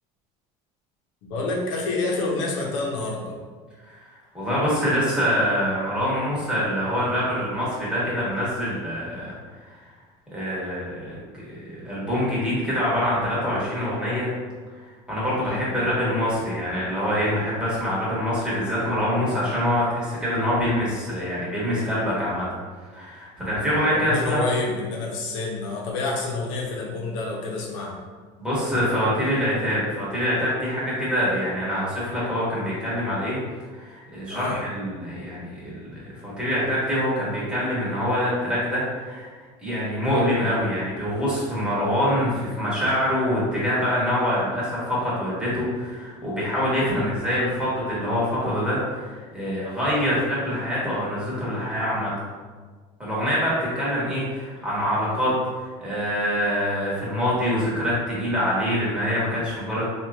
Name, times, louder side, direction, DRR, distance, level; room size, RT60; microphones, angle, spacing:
voice 1, 1.2-3.4 15.4-15.6 23.8-27.9 34.3-34.6 46.8-47.1, left 3 dB, 80° left, -2 dB, 0.8 m, -28 dB
voice 2, 4.3-9.4 10.3-14.3 14.8-22.5 22.9-24.4 28.4-33.4 33.7-39.3 39.6-52.1 53.0-55.3 55.6-59.8, equal, 5° right, -8 dB, 1.2 m, -25 dB
2.9 x 2.4 x 3.4 m, 1.5 s
cardioid pair, 135°, 16 cm